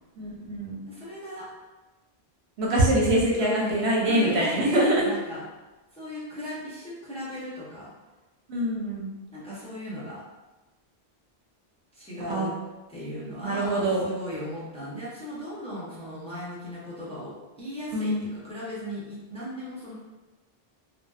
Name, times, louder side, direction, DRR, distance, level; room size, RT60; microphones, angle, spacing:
voice 1, 0.2-0.8 2.6-5.1 8.5-9.1 12.3-12.5 13.4-14.0 17.9-18.3, right 1 dB, 85° right, -3 dB, 0.9 m, -24 dB
voice 2, 0.9-1.5 3.3-5.4 5.9-7.9 9.3-10.2 11.9-12.5 12.9-19.9, equal, 5° left, -9 dB, 0.5 m, -37 dB
2.7 x 2.1 x 2.2 m, 1.1 s
omnidirectional pair, 1.1 m